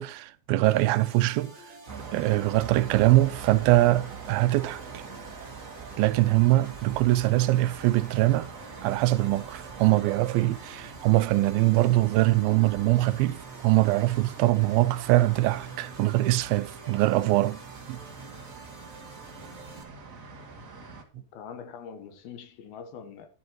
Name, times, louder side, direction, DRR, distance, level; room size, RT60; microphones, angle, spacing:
voice 1, 0.0-1.6 2.1-5.0 6.0-8.5 8.8-17.6 17.9-18.0, right 17 dB, 85° right, 2.4 m, -23 dB
sound 1, 0.6-19.8, right 2 dB, 20° right, 2.5 m, -50 dB
sound 2, 1.9-21.0, right 5 dB, 55° right, 0.8 m, -43 dB
voice 2, 21.1-23.3, left 7 dB, 80° left, 3.0 m, -43 dB
12.0 x 11.5 x 3.0 m
omnidirectional pair, 4.3 m